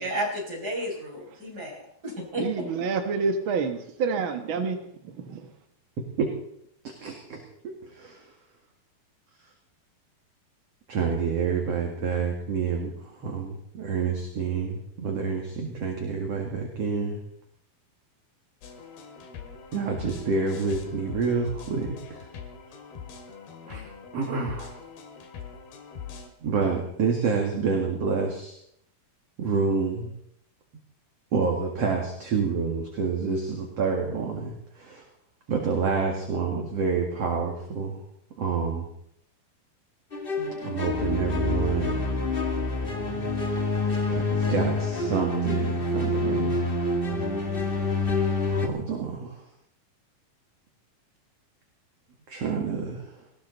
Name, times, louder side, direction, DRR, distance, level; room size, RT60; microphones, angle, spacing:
voice 1, 0.0-1.8 2.0-2.7, equal, 25° right, -2 dB, 5.8 m, -32 dB
voice 2, 2.4-4.8 5.3-5.4, right 5 dB, 75° right, 6 dB, 1.1 m, -27 dB
voice 3, 6.8-8.3 10.9-17.2 19.7-22.2 23.7-23.8 24.1-24.7 26.4-28.6 29.4-30.1 31.3-35.0 35.5-38.0 38.4-38.9 40.4-42.0 44.1-46.6 48.4-49.4 52.3-53.1, right 5 dB, 45° right, 1 dB, 2.7 m, -28 dB
sound 1, 18.6-26.3, left 7 dB, 80° left, 3.8 m, -42 dB
sound 2, 40.1-48.7, left 2 dB, 45° left, 0.6 m, -27 dB
19.0 x 17.5 x 4.1 m, 0.71 s
omnidirectional pair, 4.4 m